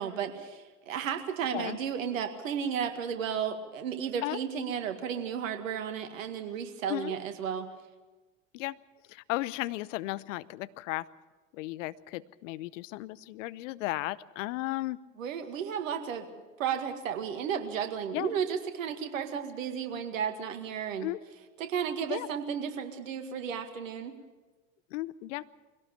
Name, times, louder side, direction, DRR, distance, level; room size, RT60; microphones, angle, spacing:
voice 1, 0.0-7.7 15.2-16.3 16.6-21.1 21.6-24.1, right 8 dB, 75° right, 7 dB, 2.0 m, -33 dB
voice 2, 9.1-11.1 11.5-15.0 18.1-18.3 21.0-21.2 22.1-22.3 24.9-25.5, left 18 dB, 65° left, 18 dB, 0.8 m, -35 dB
22.0 x 17.5 x 7.0 m, 1.2 s
hypercardioid pair, 75°, 40 cm